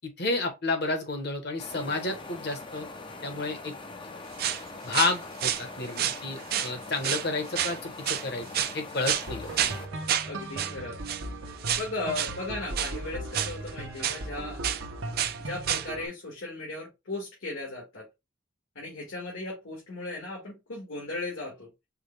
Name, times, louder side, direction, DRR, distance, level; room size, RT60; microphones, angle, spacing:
voice 1, 0.2-2.9 3.2-3.7 4.8-9.8, left 3 dB, 55° left, 1.0 m, -31 dB
sound 1, 1.6-9.9, left 3 dB, 25° left, 0.5 m, -42 dB
sound 2, 4.4-4.6 4.9-5.6 6.0-6.7 7.0-7.3 7.5-7.8 8.0-8.7 9.0-9.3 9.6-9.8 10.1-10.3 10.6-10.7 11.0-11.2 11.6-11.9 12.1-12.4 12.7-13.0 13.3-14.2 14.6-14.8 15.2-15.4 15.6-15.9, right 10 dB, 50° right, 0.4 m, -29 dB
sound 3, 9.3-16.1, right 1 dB, 75° right, 0.9 m, -38 dB
voice 2, 10.2-11.0 11.8-14.6 15.4-18.1 18.8-21.7, left 2 dB, 75° left, 1.7 m, -36 dB
4.8 x 2.3 x 3.2 m
head